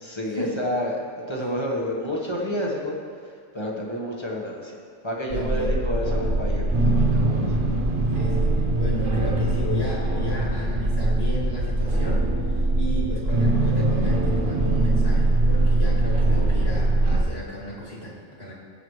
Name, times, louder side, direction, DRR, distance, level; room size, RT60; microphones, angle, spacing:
voice 1, 0.0-4.8 5.0-7.6, equal, 25° left, -2 dB, 1.3 m, -30 dB
voice 2, 5.2-5.7 8.1-8.4 8.8-12.3 12.8-18.5, left 1 dB, 55° left, -5 dB, 2.6 m, -33 dB
sound 1, 5.3-17.2, right 2 dB, 45° right, 1.2 m, -22 dB
16.0 x 7.9 x 3.2 m, 2.1 s
omnidirectional pair, 1.3 m